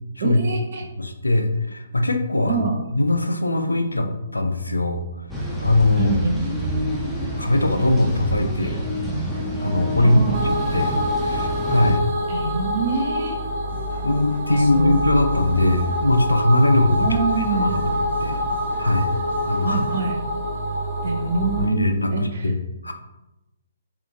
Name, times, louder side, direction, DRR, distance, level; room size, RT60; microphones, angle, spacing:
voice 1, 0.2-0.9 2.5-2.8 6.0-6.8 10.0-10.4 12.3-13.4 14.5-15.1 17.0-17.8 19.6-20.2 21.0-22.5, right 4 dB, 50° right, 2 dB, 0.6 m, -25 dB
voice 2, 1.0-2.6 2.9-5.1 5.6-6.1 7.4-8.9 9.6-11.0 11.2-12.1 14.0-17.2 17.5-18.4 18.8-19.1 19.5-19.9 21.4-22.9, left 1 dB, 80° left, 6 dB, 0.3 m, -21 dB
sound 1, 5.3-12.0, equal, ahead, 0.4 m, -28 dB
sound 2, 10.3-21.7, equal, 25° right, 0.9 m, -26 dB
sound 3, 13.7-20.1, equal, 85° right, 1.3 m, -39 dB
2.7 x 2.6 x 2.6 m, 0.97 s
figure-of-eight pair, 130°, 0 cm